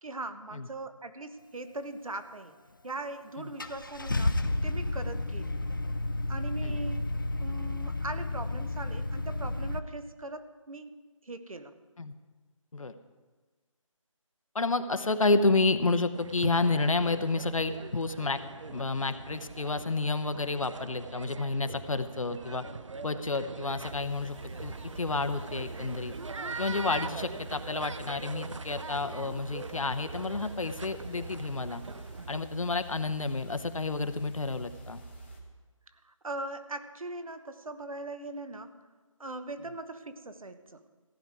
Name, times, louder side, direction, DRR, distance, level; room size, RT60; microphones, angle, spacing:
voice 1, 0.0-2.5 2.8-5.6 6.3-7.0 7.4-10.9 11.2-11.7 35.9-38.7 39.2-40.8, right 2 dB, 85° right, 10 dB, 1.2 m, -40 dB
Car / Engine starting, 2.9-3.0 3.6-9.8, left 2 dB, 40° left, 0.5 m, -31 dB
voice 2, 14.5-18.4 18.7-22.6 23.0-26.1 26.6-31.8 32.3-35.0, left 3 dB, 75° left, 10 dB, 1.0 m, -30 dB
sound 1, 16.1-32.4, right 4 dB, 65° right, 0.6 m, -42 dB
sound 2, 23.8-35.4, right 2 dB, 20° left, 1.1 m, -47 dB
15.5 x 9.3 x 4.8 m, 1.4 s
figure-of-eight pair, 180°, 17 cm